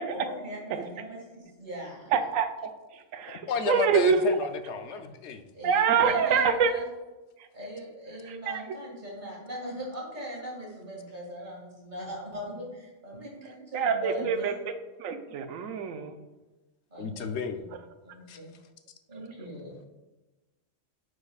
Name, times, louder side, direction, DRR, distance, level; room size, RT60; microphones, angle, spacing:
voice 1, 0.1-2.1 5.5-6.8 7.5-14.5 16.9-17.3 18.0-18.5 19.1-19.8, equal, 35° right, -4 dB, 2.2 m, -40 dB
voice 2, 2.1-2.7 3.1-3.4 3.7-4.2 5.6-6.7 8.5-8.6 13.7-14.5 15.0-16.1, right 6 dB, 90° right, 8 dB, 1.0 m, -25 dB
voice 3, 3.3-5.4 17.0-17.6 18.3-18.4, left 5 dB, 70° left, 8 dB, 0.8 m, -32 dB
9.5 x 4.8 x 2.3 m, 1.1 s
omnidirectional pair, 1.3 m